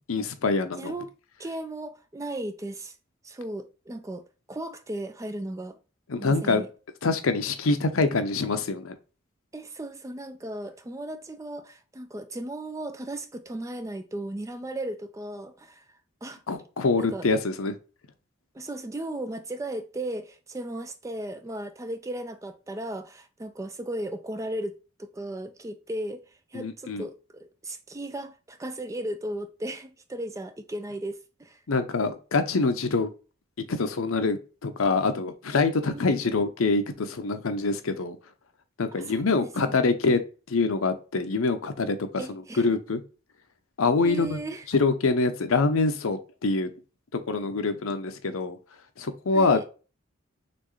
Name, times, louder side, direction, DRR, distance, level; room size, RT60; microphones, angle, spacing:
voice 1, 0.1-0.9 6.1-6.6 7.0-8.9 16.5-17.8 26.5-27.1 31.7-33.1 33.7-38.2 38.8-40.2 40.5-42.1 42.6-43.0 43.8-44.4 44.7-46.7 47.3-48.6 49.0-49.7, left 3 dB, 80° left, 0.7 m, -25 dB
voice 2, 0.8-1.1 1.4-3.0 3.2-5.8 6.2-6.7 9.5-15.8 16.2-16.4 17.0-17.3 18.5-24.7 25.0-31.6 35.9-36.3 38.9-39.8 42.2-42.7 44.0-44.7 49.3-49.6, right 1 dB, 15° right, 0.3 m, -36 dB
4.3 x 3.2 x 3.1 m
head